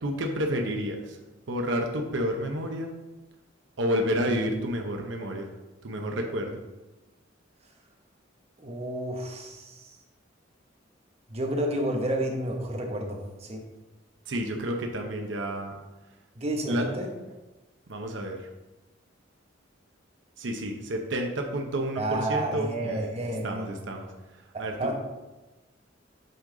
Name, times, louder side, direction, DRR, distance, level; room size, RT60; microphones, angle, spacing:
voice 1, 0.0-1.2 1.5-2.9 3.8-5.5 5.8-6.6 14.3-15.7 16.7-16.8 17.9-18.4 20.4-23.1 23.4-24.1 24.6-25.0, equal, 70° right, 3 dB, 0.7 m, -30 dB
voice 2, 8.6-10.0 11.3-13.6 16.3-17.1 22.0-23.7 24.5-25.0, right 1 dB, 35° right, 2 dB, 0.9 m, -30 dB
7.7 x 3.8 x 3.8 m, 1.1 s
head